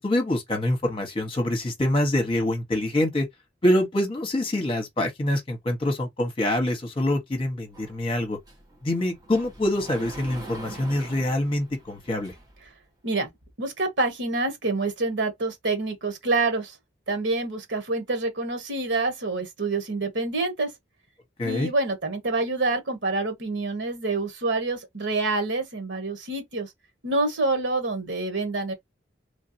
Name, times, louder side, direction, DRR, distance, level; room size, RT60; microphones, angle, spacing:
voice 1, 0.0-3.3 3.6-8.4 8.8-12.3 21.4-21.7, left 1 dB, 30° left, 1.2 m, -25 dB
Sliding door, 7.7-12.7, right 1 dB, 20° right, 1.4 m, -43 dB
voice 2, 13.6-16.7 17.1-20.7 21.4-26.7 27.0-28.7, right 3 dB, 85° right, 1.3 m, -27 dB
3.3 x 2.8 x 2.7 m
head